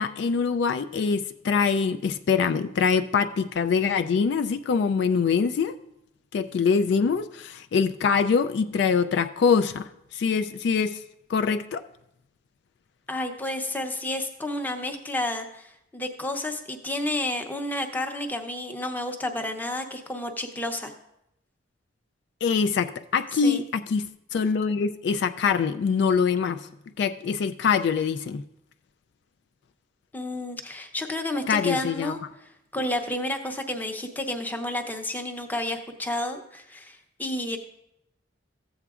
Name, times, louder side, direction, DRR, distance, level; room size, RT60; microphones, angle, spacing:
voice 1, 0.0-5.8 6.3-11.0 11.3-11.8 22.4-24.1 24.3-26.7 27.0-28.4 31.5-32.1, left 5 dB, 65° left, 9 dB, 0.3 m, -24 dB
voice 2, 13.1-20.9 23.4-23.6 30.1-37.6, left 1 dB, 10° left, 4 dB, 0.7 m, -31 dB
14.5 x 7.9 x 2.4 m, 0.82 s
head